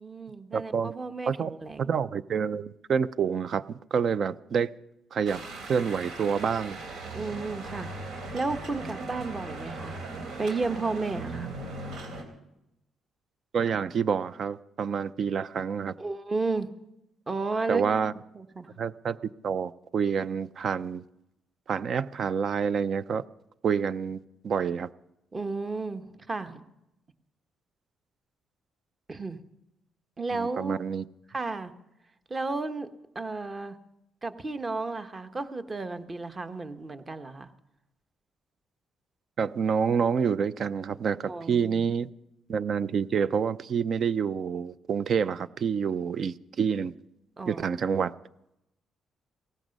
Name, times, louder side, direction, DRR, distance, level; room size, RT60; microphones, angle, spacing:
voice 1, 0.0-1.9 7.1-7.9 8.3-10.0 10.4-11.5 16.0-16.7 17.3-18.0 18.3-18.7 25.3-26.6 29.1-29.4 30.2-30.8 31.3-31.7 32.3-32.9 33.1-33.8 34.2-37.5 41.2-41.9 47.4-47.8, right 3 dB, 30° right, 9 dB, 1.2 m, -33 dB
voice 2, 0.5-0.9 1.3-1.5 1.8-4.7 5.1-5.4 5.7-6.8 13.5-15.9 17.7-18.1 18.8-19.2 19.4-21.0 21.7-23.2 23.6-24.9 30.3-31.0 39.4-42.1 42.5-46.9 47.5-48.1, right 6 dB, 55° right, 16 dB, 0.6 m, -28 dB
sound 1, 5.2-12.2, right 2 dB, 80° right, 3.6 m, -38 dB
18.0 x 15.0 x 5.4 m, 0.86 s
cardioid pair, 90°, 0 cm